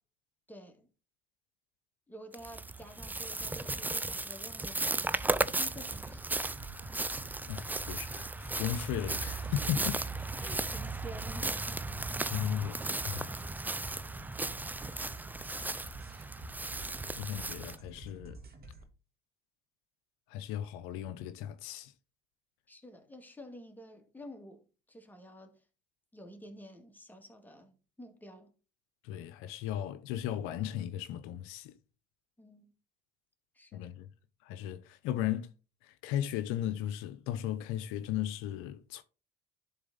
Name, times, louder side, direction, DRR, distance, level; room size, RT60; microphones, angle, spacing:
voice 1, 0.5-0.9 2.1-6.4 10.4-11.9 22.7-25.6 26.1-28.5 32.4-32.7 33.5-33.9, equal, 10° left, 2.2 m, -50 dB
sound 1, 2.3-17.8, right 2 dB, 10° right, 0.5 m, -36 dB
sound 2, 5.8-18.9, right 1 dB, 45° right, 2.3 m, -50 dB
voice 2, 7.2-10.0 12.2-12.8 13.0-13.4 17.2-18.4 20.3-21.9 29.0-31.8 33.7-34.1 34.4-35.5 35.8-39.0, left 11 dB, 75° left, 0.6 m, -36 dB
11.0 x 4.0 x 4.0 m
hypercardioid pair, 70°, 21 cm